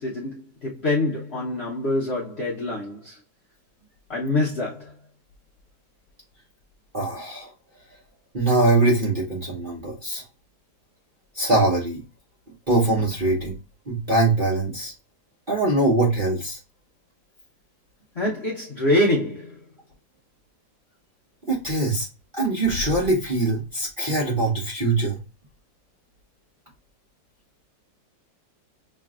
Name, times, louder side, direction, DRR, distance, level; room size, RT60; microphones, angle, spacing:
voice 1, 0.0-3.2 4.1-4.9 18.1-19.6, left 1 dB, 50° left, 0.8 m, -25 dB
voice 2, 6.9-7.5 8.3-10.2 11.3-12.0 12.7-13.5 13.9-14.9 15.5-16.6 21.5-22.1 22.3-25.2, right 2 dB, 40° right, 0.8 m, -22 dB
5.4 x 2.7 x 2.4 m
omnidirectional pair, 2.0 m